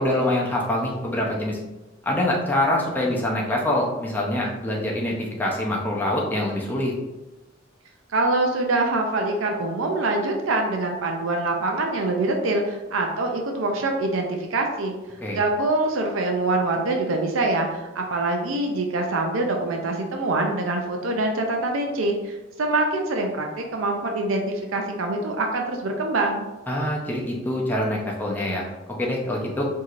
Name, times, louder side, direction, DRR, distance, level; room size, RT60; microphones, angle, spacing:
voice 1, 0.0-1.6 2.0-6.9 15.2-15.4 26.7-28.7 29.0-29.7, left 1 dB, 10° left, -3 dB, 0.6 m, -25 dB
voice 2, 8.1-14.9 15.3-26.5, right 2 dB, 85° right, 2 dB, 0.5 m, -24 dB
4.5 x 2.7 x 2.5 m, 1.1 s
head